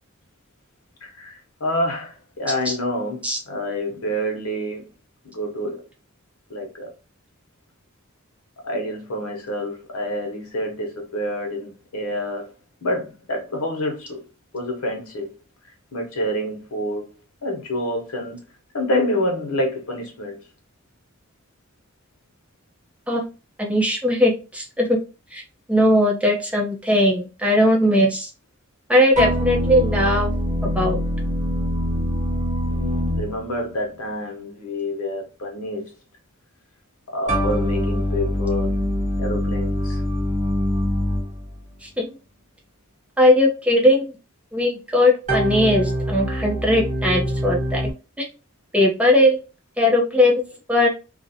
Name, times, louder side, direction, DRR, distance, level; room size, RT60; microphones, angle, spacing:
voice 1, 1.0-4.8 5.3-5.8 6.5-6.9 8.6-12.5 12.8-14.2 14.5-15.3 15.9-17.1 17.4-18.4 18.7-20.4 32.6-35.9 37.1-38.7 39.2-40.0, left 1 dB, 90° left, 0.9 m, -27 dB
voice 2, 23.6-25.0 25.3-25.4 25.7-28.3 28.9-30.3 30.6-31.0 41.8-42.1 43.2-44.1 44.5-47.9 48.2-48.3 48.7-49.4 49.8-50.4 50.7-50.9, left 1 dB, 5° right, 0.5 m, -19 dB
sound 1, 29.1-33.8 37.3-41.6 45.3-47.9, equal, 35° right, 0.8 m, -24 dB
2.5 x 2.1 x 2.6 m
head